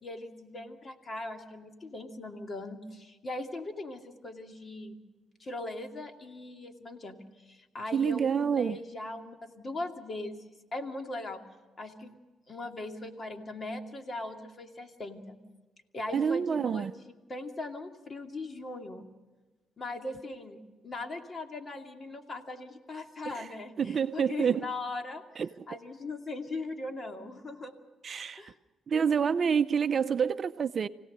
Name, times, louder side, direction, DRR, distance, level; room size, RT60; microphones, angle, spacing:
voice 1, 0.0-5.0 5.4-7.2 7.4-11.4 11.8-12.2 12.5-15.4 15.9-19.0 19.8-25.2 25.7-27.7 28.4-28.6, left 2 dB, 40° left, 4 dB, 2.5 m, -40 dB
voice 2, 7.9-8.8 16.1-16.9 23.3-23.5 23.8-24.7 25.4-25.7 28.0-28.4 28.9-30.9, right 7 dB, 45° right, 12 dB, 0.6 m, -28 dB
25.5 x 17.5 x 6.7 m, 1.2 s
cardioid pair, 90°, 0 cm